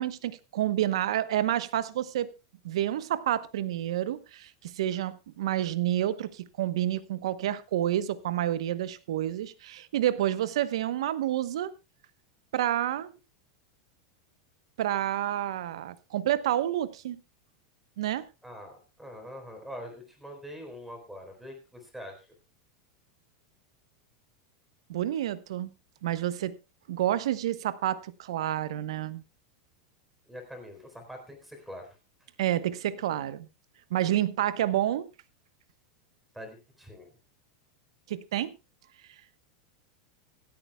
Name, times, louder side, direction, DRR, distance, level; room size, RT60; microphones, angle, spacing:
voice 1, 0.0-2.3 2.6-11.7 12.5-13.1 14.8-17.2 18.0-18.3 24.9-25.7 26.0-26.6 26.9-29.2 32.4-33.5 33.9-35.1 38.1-38.6, right 12 dB, 85° right, 1.0 m, -29 dB
voice 2, 18.4-22.3 30.3-32.0 36.3-37.1, equal, ahead, 3.9 m, -44 dB
25.5 x 8.8 x 2.3 m
supercardioid pair, 160°, 3 cm